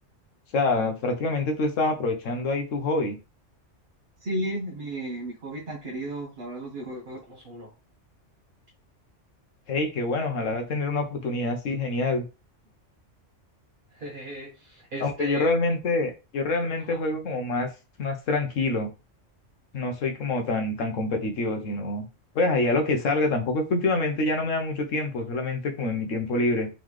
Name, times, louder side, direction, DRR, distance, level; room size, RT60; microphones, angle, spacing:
voice 1, 0.5-3.2 9.7-12.2 15.0-17.7 18.0-18.9 19.7-22.1 22.3-26.7, left 2 dB, 85° left, 1.3 m, -26 dB
voice 2, 4.2-7.7 13.9-15.4 16.8-17.0, right 1 dB, 45° right, 1.0 m, -35 dB
3.8 x 3.8 x 3.2 m
omnidirectional pair, 1.3 m